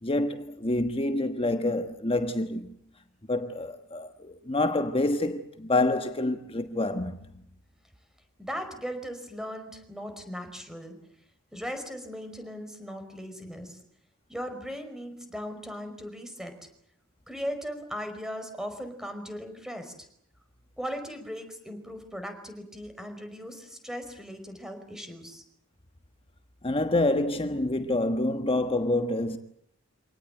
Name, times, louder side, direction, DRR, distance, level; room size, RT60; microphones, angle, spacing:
voice 1, 0.0-2.7 3.3-7.4 26.6-29.4, left 2 dB, 25° left, 1.3 m, -27 dB
voice 2, 8.4-10.9 11.5-13.8 14.3-16.5 17.3-19.9 20.8-25.4, equal, ahead, 5.1 m, -38 dB
26.5 x 18.5 x 9.0 m
head